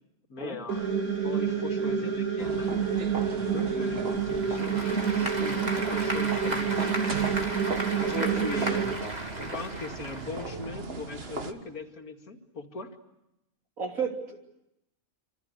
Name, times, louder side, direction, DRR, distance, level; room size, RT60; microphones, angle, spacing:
voice 1, 0.3-0.9 1.2-8.9 9.4-13.0, left 3 dB, 90° left, 4 dB, 2.7 m, -40 dB
sound 1, 0.7-8.9, right 7 dB, 85° right, 3.5 m, -28 dB
sound 2, 2.4-11.5, right 3 dB, 45° right, 1.7 m, -38 dB
Applause / Crowd, 4.1-10.7, right 1 dB, 30° right, 2.8 m, -35 dB
voice 2, 8.1-8.4 8.8-8.9 13.8-14.5, right 5 dB, 70° right, 2 dB, 3.7 m, -33 dB
27.0 x 26.0 x 8.1 m, 0.87 s
omnidirectional pair, 1.5 m